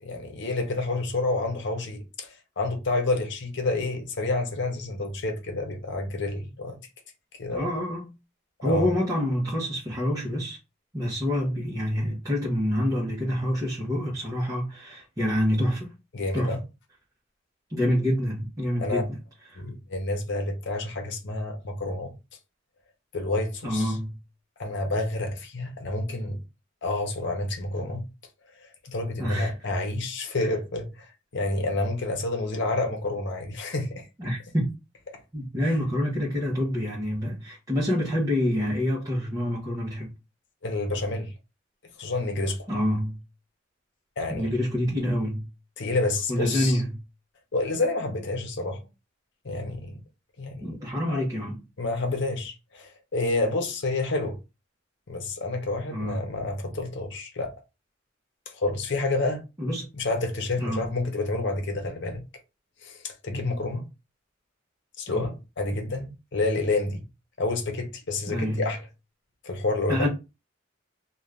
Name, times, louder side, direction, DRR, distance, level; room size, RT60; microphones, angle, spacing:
voice 1, 0.0-6.8 7.3-7.7 8.6-8.9 16.1-16.6 18.8-19.0 19.6-22.1 23.1-24.0 24.6-26.4 26.8-28.0 28.8-34.0 40.6-41.3 42.0-42.7 44.2-44.5 45.8-46.8 47.5-48.8 49.4-50.0 50.4-50.7 51.1-51.3 51.8-54.4 55.1-57.5 58.5-59.4 59.9-62.2 62.8-63.9 65.0-67.0 67.4-68.8 69.4-70.1, left 2 dB, 65° left, 0.8 m, -29 dB
voice 2, 7.5-8.1 8.6-10.6 10.9-15.9 16.3-16.6 17.7-19.2 19.5-19.6 23.6-24.2 29.2-29.6 30.4-30.5 34.2-34.7 35.3-40.1 42.7-43.2 44.4-45.5 46.3-47.0 50.6-51.6 55.9-56.3 59.6-59.9 60.6-60.9 65.1-65.2 68.3-68.7 69.9-70.1, equal, 20° right, 0.8 m, -27 dB
2.6 x 2.3 x 3.3 m
head